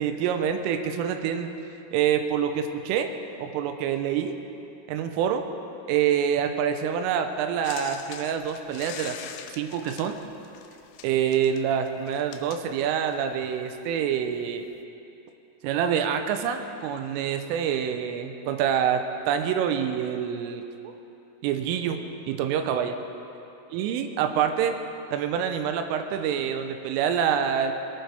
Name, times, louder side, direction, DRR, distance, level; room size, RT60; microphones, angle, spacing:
voice 1, 0.0-1.5 1.9-3.1 3.4-4.4 4.9-5.5 5.9-9.2 9.5-10.2 11.0-14.6 15.6-20.9 21.4-22.0 22.3-23.0 23.7-24.8 25.1-27.7, right 8 dB, 85° right, 6 dB, 3.3 m, -26 dB
sound 1, 7.6-13.3 14.3-14.4, left 9 dB, 85° left, 2.5 m, -43 dB
21.5 x 17.0 x 3.5 m, 2.8 s
omnidirectional pair, 5.8 m